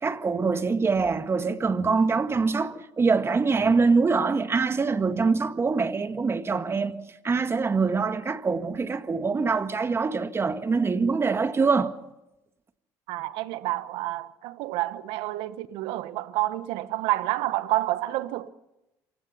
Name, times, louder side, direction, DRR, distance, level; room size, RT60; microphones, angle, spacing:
voice 1, 0.0-6.9 7.2-11.9, right 4 dB, 30° right, 1.7 m, -24 dB
voice 2, 13.1-18.5, right 16 dB, 75° right, 1.1 m, -29 dB
27.0 x 17.0 x 5.7 m
supercardioid pair, 75°, 9 cm